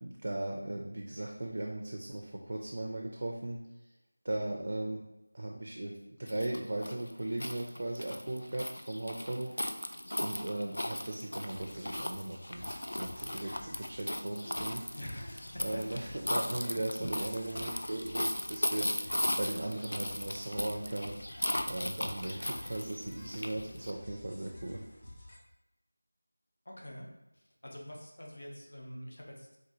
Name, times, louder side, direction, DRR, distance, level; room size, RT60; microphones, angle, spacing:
voice 1, 0.0-3.6 4.2-5.0 5.3-5.9 6.2-9.6 10.2-14.8 15.6-21.2 21.7-24.9, right 1 dB, 40° right, 0 dB, 0.4 m, -37 dB
sound 1, 6.3-23.9, left 1 dB, 90° left, 0.3 m, -37 dB
sound 2, 11.5-25.4, left 1 dB, 25° left, 0.4 m, -52 dB
voice 2, 14.9-15.8 17.0-17.1 26.7-27.1 27.6-29.6, equal, 60° left, -1 dB, 0.8 m, -45 dB
4.3 x 2.2 x 2.9 m, 0.93 s
figure-of-eight pair, 175°, 0 cm